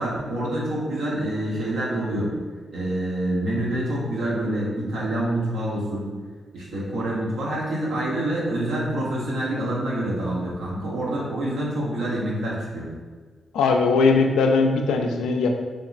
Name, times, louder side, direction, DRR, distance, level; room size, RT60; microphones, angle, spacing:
voice 1, 0.0-2.3 2.7-6.1 6.5-12.9, right 1 dB, 80° right, -5 dB, 0.9 m, -26 dB
voice 2, 13.5-15.5, left 4 dB, 85° left, 3 dB, 0.3 m, -19 dB
3.5 x 3.0 x 2.5 m, 1.5 s
supercardioid pair, 45°, 0 cm